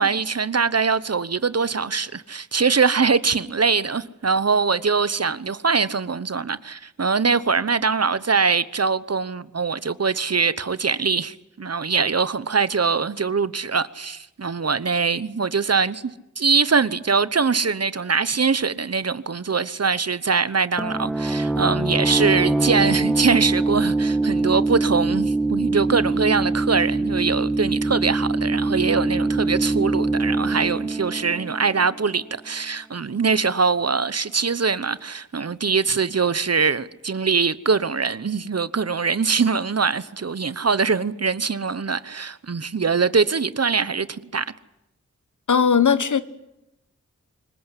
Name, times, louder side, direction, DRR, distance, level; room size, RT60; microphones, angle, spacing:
voice 1, 0.0-44.4, right 5 dB, 55° right, 1.0 m, -22 dB
sound 1, 20.8-32.3, right 2 dB, 5° left, 2.1 m, -23 dB
voice 2, 45.5-46.2, left 6 dB, 85° left, 1.3 m, -18 dB
25.5 x 22.5 x 9.9 m
wide cardioid pair, 70°, 29 cm